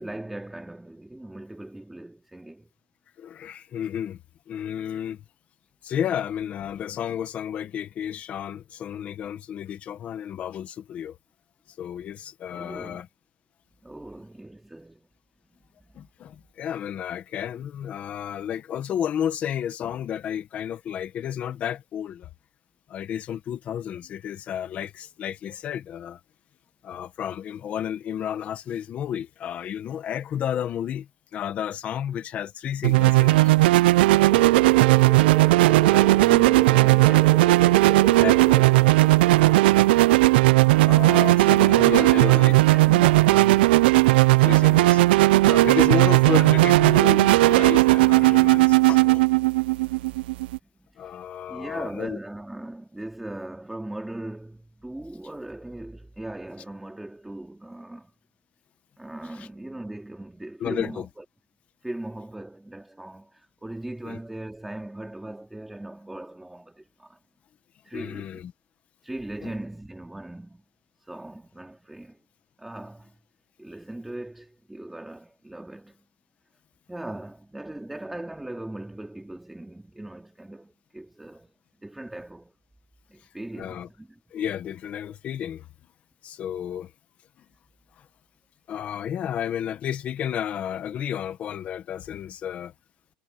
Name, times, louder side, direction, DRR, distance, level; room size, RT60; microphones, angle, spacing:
voice 1, 0.0-2.7 12.5-13.0 13.8-15.1 15.8-15.9 35.4-37.7 40.8-43.9 50.9-51.2 51.5-58.1 59.0-61.2 61.8-67.2 67.8-68.4 69.0-70.6 71.0-72.2 72.6-73.2 73.6-76.0 76.9-81.5 81.8-82.5 83.1-84.2, right 1 dB, 5° right, 3.1 m, -39 dB
voice 2, 3.2-4.2 4.5-5.2 5.8-11.2 11.8-13.1 15.9-22.3 22.9-26.2 26.8-33.5 34.2-34.3 38.2-38.6 40.9-42.5 44.4-45.0 45.4-49.2 51.0-52.2 59.4-59.5 60.6-61.1 64.0-64.2 67.9-68.5 69.4-69.5 83.6-83.9 84.3-85.7 86.2-86.9 88.7-92.7, left 9 dB, 25° left, 1.4 m, -32 dB
sound 1, 32.8-50.6, right 19 dB, 65° right, 0.5 m, -17 dB
sound 2, 34.3-42.6, right 8 dB, 20° right, 2.0 m, -33 dB
supercardioid pair, 170°, 6 cm